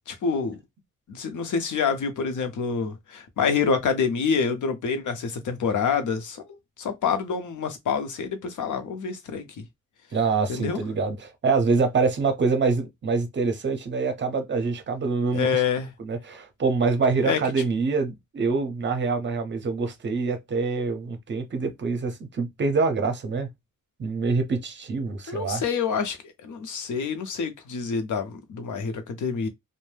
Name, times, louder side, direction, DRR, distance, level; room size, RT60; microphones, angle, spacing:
voice 1, 0.1-0.6 1.1-6.4 6.8-9.5 10.5-10.8 15.3-15.9 17.2-17.4 25.3-29.5, left 6 dB, 65° left, 0.7 m, -27 dB
voice 2, 10.1-15.6 16.0-23.5 24.0-25.6, right 4 dB, 35° right, 0.6 m, -25 dB
2.6 x 2.1 x 3.2 m
wide cardioid pair, 145°, 33 cm